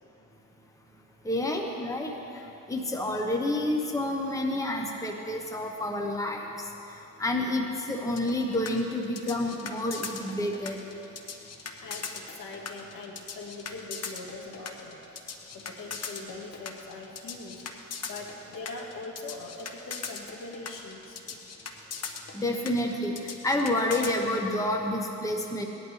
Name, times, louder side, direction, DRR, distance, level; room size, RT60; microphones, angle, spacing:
voice 1, 1.2-2.1 2.7-6.5 7.2-10.8 22.3-25.7, left 1 dB, 10° left, 1 dB, 1.1 m, -29 dB
sound 1, 8.2-24.1, left 6 dB, 50° left, 1.0 m, -39 dB
voice 2, 11.8-15.0 15.5-17.7 18.1-21.2 23.6-23.8, left 3 dB, 75° left, 1 dB, 1.7 m, -42 dB
18.0 x 11.0 x 3.3 m, 3.0 s
cardioid pair, 100°, 33 cm